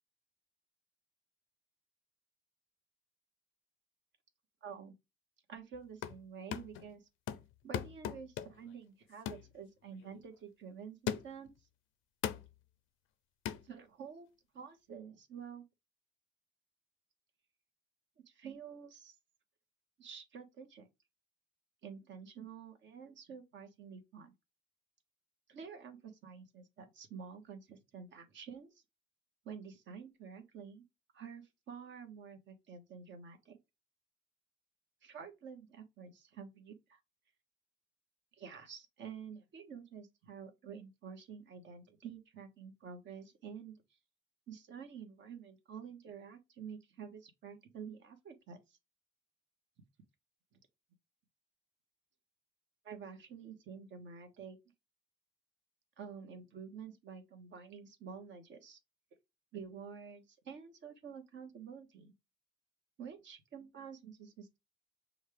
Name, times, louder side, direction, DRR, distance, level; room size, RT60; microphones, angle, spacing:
voice 1, 4.6-4.9 5.5-7.0 7.6-11.5 13.6-14.3 14.5-15.6 18.3-19.1 20.0-20.9 21.8-24.3 25.5-28.8 29.4-30.8 31.1-33.6 35.0-37.0 38.4-43.8 44.5-48.8 52.8-54.6 56.0-58.8 59.5-62.1 63.0-64.6, right 6 dB, 70° right, 1.2 m, -49 dB
sound 1, 5.7-6.2 6.5-6.9 7.3-8.7 9.3-9.5 10.0-10.1 11.1-11.5 12.2-12.5 13.5-13.7, left 10 dB, 90° left, 0.5 m, -39 dB
6.1 x 2.4 x 3.3 m
cardioid pair, 90°, 20 cm